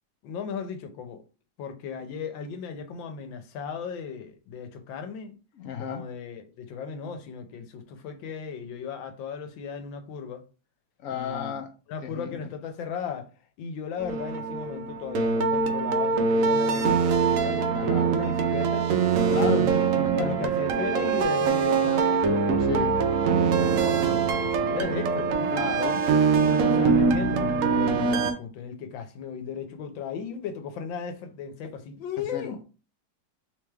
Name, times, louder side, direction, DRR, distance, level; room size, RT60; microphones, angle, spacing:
voice 1, 0.2-1.2 1.6-5.4 5.8-10.4 11.1-11.6 11.9-13.3 13.6-18.9 19.3-19.8 20.1-22.6 23.4-25.5 26.4-32.6, left 6 dB, 90° left, 1.5 m, -36 dB
voice 2, 5.5-6.0 11.0-11.7 12.0-12.4 17.7-18.1 19.3-20.5 22.6-23.0 25.5-26.1 32.2-32.6, left 7 dB, 65° left, 0.8 m, -34 dB
sound 1, 14.0-28.3, right 5 dB, 70° right, 0.8 m, -23 dB
3.4 x 3.3 x 3.4 m
omnidirectional pair, 2.0 m